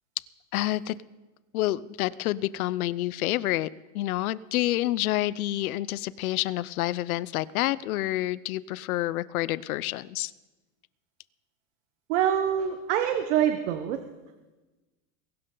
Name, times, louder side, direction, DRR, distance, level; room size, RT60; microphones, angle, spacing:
voice 1, 0.5-1.0 1.5-3.7 3.9-10.3, left 16 dB, 85° left, 19 dB, 0.7 m, -28 dB
voice 2, 12.1-14.0, right 10 dB, 60° right, 7 dB, 1.2 m, -25 dB
22.5 x 12.0 x 3.9 m, 1.1 s
supercardioid pair, 170°, 42 cm